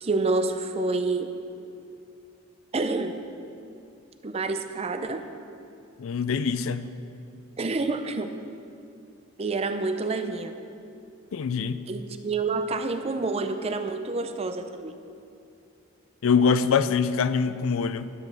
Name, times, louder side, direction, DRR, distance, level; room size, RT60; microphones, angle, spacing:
voice 1, 0.0-1.3 2.7-3.2 4.2-5.3 7.6-8.3 9.4-10.5 11.9-14.9, right 3 dB, 30° right, 8 dB, 0.5 m, -28 dB
voice 2, 6.0-6.9 11.3-11.8 16.2-18.1, left 5 dB, 80° left, 13 dB, 0.4 m, -24 dB
11.0 x 5.2 x 6.7 m, 2.5 s
head